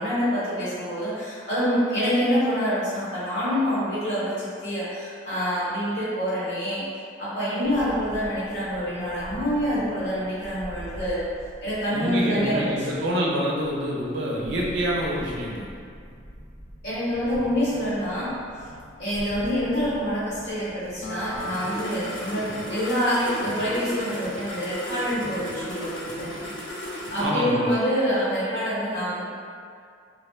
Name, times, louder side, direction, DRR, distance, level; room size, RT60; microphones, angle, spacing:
voice 1, 0.0-6.8 7.2-11.2 11.6-12.9 16.8-18.3 19.0-26.3 27.1-29.2, equal, 65° left, -11 dB, 1.0 m, -26 dB
sound 1, 7.6-27.3, equal, 85° left, 0.7 m, -39 dB
voice 2, 11.9-15.7 27.2-27.6, equal, 65° right, -3 dB, 0.4 m, -26 dB
Acoustic guitar, 21.0-24.6, right 1 dB, 35° left, 0.3 m, -39 dB
2.7 x 2.1 x 2.2 m, 2.3 s
head